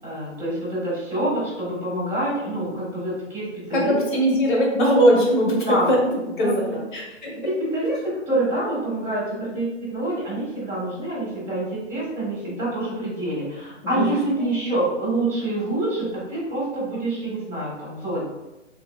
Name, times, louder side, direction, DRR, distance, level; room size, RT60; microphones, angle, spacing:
voice 1, 0.0-3.9 5.7-5.9 6.4-6.5 7.6-18.2, right 1 dB, 5° right, -13 dB, 0.5 m, -26 dB
voice 2, 3.7-6.0 6.4-7.3 13.8-14.2, equal, 40° left, -3 dB, 1.0 m, -20 dB
3.0 x 2.7 x 2.3 m, 0.99 s
figure-of-eight pair, 130°, 37 cm